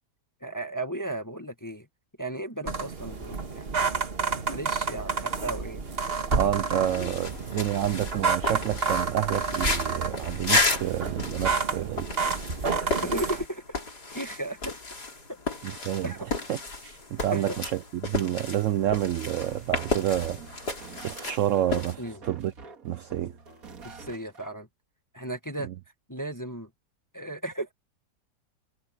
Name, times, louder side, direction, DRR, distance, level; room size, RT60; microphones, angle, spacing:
voice 1, 0.4-1.9 2.2-3.8 4.5-5.8 13.0-13.6 14.1-14.7 15.3-16.3 17.3-17.6 22.0-22.2 23.8-24.7 25.1-25.7 26.1-26.7 27.1-27.7, right 1 dB, 10° left, 1.6 m, -35 dB
sound 1, 2.7-13.4, right 4 dB, 35° right, 1.8 m, -30 dB
voice 2, 6.3-12.1 15.6-16.1 16.5-16.6 16.8-20.7 21.0-22.5 22.8-23.3 25.6-25.7, right 12 dB, 80° right, 0.7 m, -29 dB
sound 2, 6.8-21.9, left 3 dB, 65° left, 4.8 m, -33 dB
sound 3, 18.8-24.5, right 4 dB, 55° right, 2.3 m, -47 dB
omnidirectional pair, 1.9 m